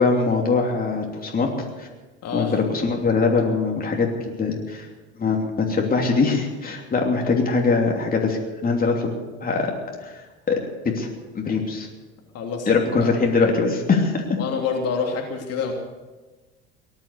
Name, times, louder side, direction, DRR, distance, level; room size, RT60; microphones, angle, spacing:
voice 1, 0.0-1.5 1.8-1.9 2.3-4.1 4.4-4.9 5.2-9.1 9.4-9.7 10.0-10.6 10.8-11.1 11.3-11.9 12.7-14.4, left 4 dB, 25° left, 0 dB, 3.0 m, -22 dB
voice 2, 2.2-2.5 6.8-6.9 12.3-12.7 13.0-13.1 14.4-15.7, left 5 dB, 45° left, 1 dB, 2.9 m, -27 dB
18.5 x 11.0 x 6.7 m, 1.2 s
figure-of-eight pair, 65°, 33 cm